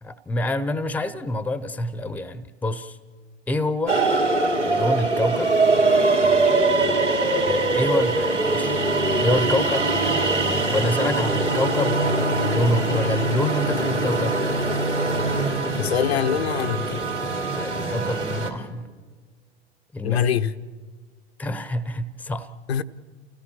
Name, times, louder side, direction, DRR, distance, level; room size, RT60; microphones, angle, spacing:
voice 1, 0.0-3.0 3.5-4.0 4.6-5.5 7.5-8.8 9.2-9.9 10.7-14.4 17.6-18.9 19.9-20.3 21.4-22.5, left 1 dB, 5° left, 0.9 m, -27 dB
sound 1, 3.9-18.5, right 2 dB, 90° right, 3.0 m, -22 dB
voice 2, 15.8-17.1 20.0-20.6 22.7-22.8, left 8 dB, 65° left, 1.0 m, -24 dB
29.5 x 17.0 x 7.3 m
figure-of-eight pair, 90°, 34 cm